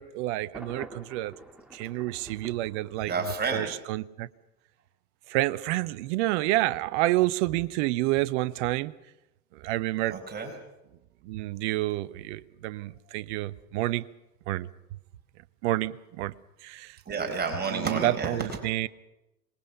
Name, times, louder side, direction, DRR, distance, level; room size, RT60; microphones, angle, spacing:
voice 1, 0.0-1.3 1.7-3.1 3.5-4.3 5.3-8.9 9.5-10.2 11.2-14.1 14.5-14.7 15.6-16.3 16.6-17.0 17.7-18.9, right 17 dB, 45° right, 0.9 m, -29 dB
Thunder, 0.5-3.5, right 1 dB, ahead, 2.0 m, -48 dB
voice 2, 3.1-3.7 10.1-10.5 17.0-18.5, right 4 dB, 20° right, 4.7 m, -30 dB
26.0 x 20.5 x 5.8 m
figure-of-eight pair, 90°, 48 cm